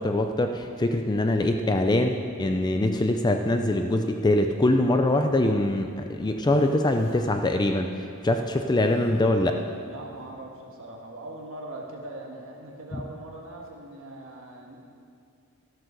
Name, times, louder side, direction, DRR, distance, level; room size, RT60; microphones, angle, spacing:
voice 1, 0.0-9.6 12.9-13.0, left 1 dB, 20° left, 5 dB, 0.4 m, -23 dB
Human voice, 6.5-7.2 8.2-10.1, left 1 dB, 65° left, 2.8 m, -49 dB
voice 2, 9.9-14.8, right 1 dB, 65° right, 0 dB, 1.6 m, -41 dB
14.0 x 7.6 x 6.6 m, 2.4 s
head